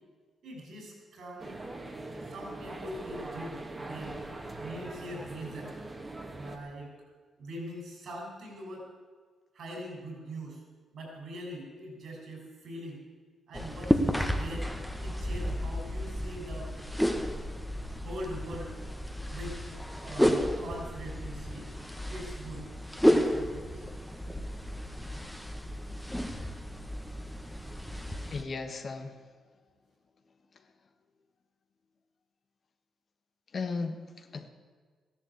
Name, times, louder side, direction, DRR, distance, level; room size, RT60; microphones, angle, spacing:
voice 1, 0.4-1.6 2.2-5.8 6.3-6.9 7.4-8.9 9.5-10.6 10.9-13.0 13.5-14.7 15.0-16.7 18.0-18.7 19.3-19.6 20.0-21.7 22.1-22.7 23.0-23.9, equal, 70° right, -1 dB, 6.4 m, -42 dB
sound 1, 1.4-6.6, right 2 dB, 30° right, 2.2 m, -42 dB
sound 2, 13.5-28.4, equal, 5° left, 1.6 m, -32 dB
voice 2, 28.3-29.2 33.5-34.5, left 4 dB, 50° left, 7 dB, 1.6 m, -36 dB
14.0 x 11.0 x 8.5 m, 1.5 s
supercardioid pair, 60°, 0 cm